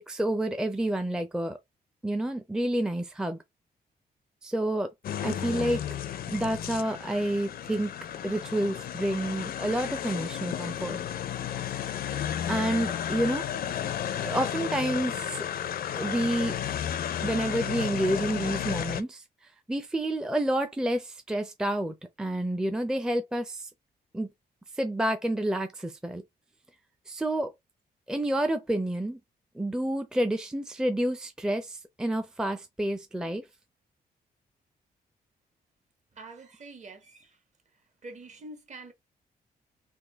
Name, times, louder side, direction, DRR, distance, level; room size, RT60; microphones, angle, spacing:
voice 1, 0.0-1.6 2.0-3.4 4.4-4.9 5.2-5.8 6.3-7.9 8.2-11.0 12.5-13.5 14.2-15.5 15.9-16.6 17.2-19.2 19.7-23.7 24.1-24.3 24.8-26.2 27.1-27.5 28.1-29.2 29.5-33.4, right 1 dB, 5° right, 0.5 m, -29 dB
sound 1, 5.0-19.0, left 10 dB, 65° left, 0.4 m, -33 dB
voice 2, 36.1-37.4 38.0-38.9, right 2 dB, 45° right, 1.1 m, -45 dB
3.5 x 2.3 x 3.4 m
cardioid pair, 100°, 17 cm